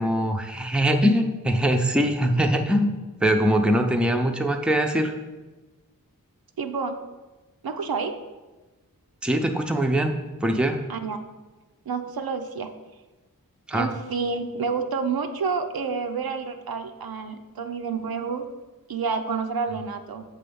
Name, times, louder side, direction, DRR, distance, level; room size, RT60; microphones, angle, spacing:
voice 1, 0.0-2.9 3.2-5.1 9.2-10.1 10.4-10.8 13.7-13.9, equal, 5° right, 4 dB, 0.6 m, -22 dB
voice 2, 6.6-7.0 7.6-8.1 10.9-11.2 11.9-12.7 13.7-18.4 18.9-20.2, right 5 dB, 85° right, 6 dB, 0.6 m, -29 dB
6.9 x 3.3 x 5.3 m, 1.1 s
wide cardioid pair, 65°, 35 cm